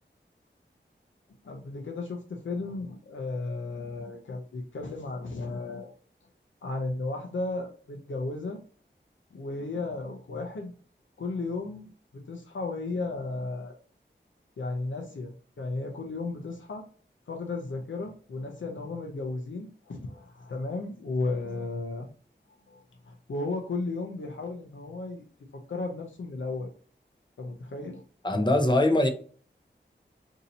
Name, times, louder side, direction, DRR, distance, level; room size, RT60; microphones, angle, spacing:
voice 1, 1.4-5.9 6.6-8.6 9.3-10.7 11.2-11.9 12.1-13.8 14.6-16.8 17.3-22.1 22.7-22.8 23.0-25.2 25.5-26.7 27.4-28.0, left 3 dB, 85° left, 0.6 m, -34 dB
voice 2, 28.2-29.1, left 1 dB, 25° left, 0.7 m, -22 dB
2.7 x 2.6 x 4.0 m
wide cardioid pair, 45°, 20 cm